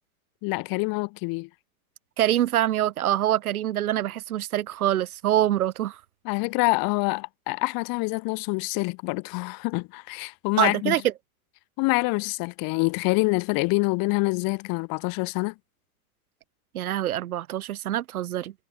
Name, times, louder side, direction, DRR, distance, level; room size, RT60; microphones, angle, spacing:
voice 1, 0.4-1.5 6.3-10.9 11.8-15.5, left 28 dB, 55° left, 3.6 m, -26 dB
voice 2, 2.2-6.0 10.6-11.0 16.7-18.5, right 12 dB, 90° right, 2.2 m, -25 dB
supercardioid pair, 115°, 42 cm